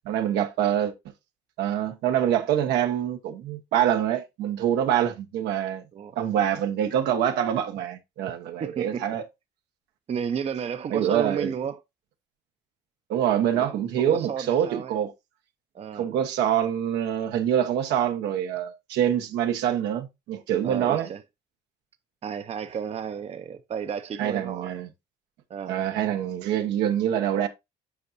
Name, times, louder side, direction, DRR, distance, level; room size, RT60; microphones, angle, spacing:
voice 1, 0.0-0.9 1.6-5.8 6.2-9.2 10.9-11.5 13.1-15.1 15.9-21.1 24.2-24.9 25.7-27.5, right 10 dB, 85° right, 1.2 m, -25 dB
voice 2, 5.9-6.2 8.6-9.1 10.1-11.8 13.5-13.7 14.0-15.0 15.7-16.1 20.6-21.2 22.2-24.7 25.5-25.8, right 7 dB, 40° right, 0.6 m, -32 dB
8.4 x 5.8 x 2.6 m
cardioid pair, 110°, 17 cm